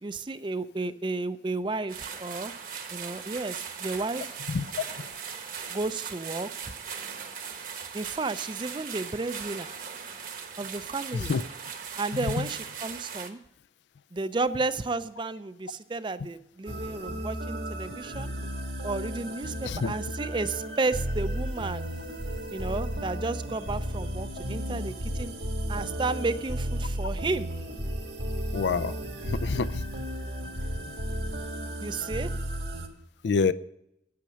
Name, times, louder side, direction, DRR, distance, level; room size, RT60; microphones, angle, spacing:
voice 1, 0.0-2.5 2.9-4.3 5.7-6.7 7.9-9.7 10.6-11.3 12.0-13.4 14.1-18.3 18.8-21.9 22.5-25.3 25.7-27.5 31.8-32.3, right 3 dB, 25° right, 14 dB, 0.4 m, -32 dB
sound 1, 1.9-13.3, right 7 dB, 45° right, 1.1 m, -39 dB
sound 2, 16.6-32.9, equal, 70° right, 1.5 m, -34 dB
voice 2, 28.5-28.9 29.2-29.8 33.2-33.5, left 5 dB, 75° left, 15 dB, 0.4 m, -26 dB
9.7 x 8.6 x 6.2 m, 0.81 s
head